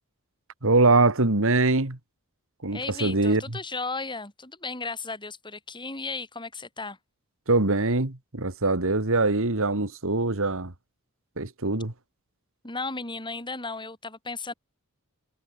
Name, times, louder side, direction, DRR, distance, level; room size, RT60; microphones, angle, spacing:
voice 1, 0.6-2.0 2.6-3.6 7.5-10.7 11.4-11.9, right 2 dB, 65° right, 2.3 m, -23 dB
voice 2, 2.7-7.0 12.6-14.5, left 3 dB, 20° left, 7.3 m, -35 dB
head